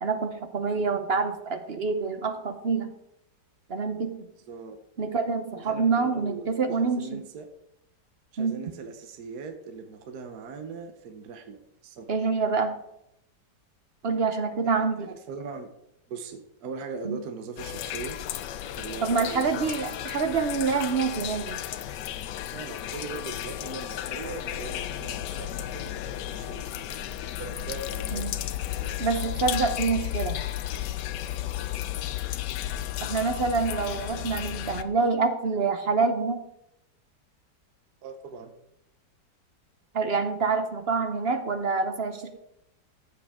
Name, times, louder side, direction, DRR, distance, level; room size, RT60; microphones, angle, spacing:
voice 1, 0.0-2.9 3.7-4.3 5.0-7.2 8.4-8.6 12.1-12.8 14.0-15.1 17.0-17.2 19.0-21.6 28.1-28.3 29.0-30.4 33.0-36.5 39.9-42.4, right 4 dB, 50° right, 8 dB, 0.8 m, -26 dB
voice 2, 4.5-4.8 5.5-7.5 8.3-12.2 14.6-15.7 16.1-18.2 18.7-19.6 22.5-26.7 27.3-28.4 28.7-29.0 38.0-38.5, right 4 dB, 65° right, 6 dB, 1.4 m, -40 dB
sound 1, 17.6-34.8, left 12 dB, 85° left, 1.2 m, -33 dB
14.5 x 7.6 x 3.6 m, 0.80 s
omnidirectional pair, 1.8 m